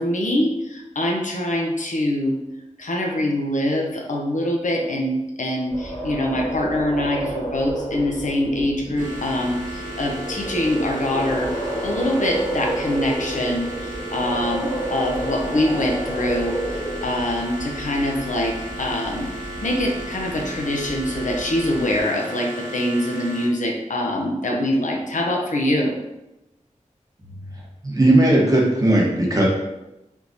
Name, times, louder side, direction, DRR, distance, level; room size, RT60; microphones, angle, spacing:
voice 1, 0.0-2.4 2.8-11.5 11.8-19.3 19.6-25.9, left 1 dB, 75° left, 0 dB, 0.6 m, -24 dB
sound 1, 5.7-22.0, right 1 dB, 45° left, 1.4 m, -31 dB
sound 2, 9.0-23.5, right 1 dB, 90° right, 0.9 m, -34 dB
voice 2, 27.8-29.4, right 1 dB, 25° right, -3 dB, 0.9 m, -17 dB
3.5 x 2.9 x 2.6 m, 0.92 s
wide cardioid pair, 85°, 13 cm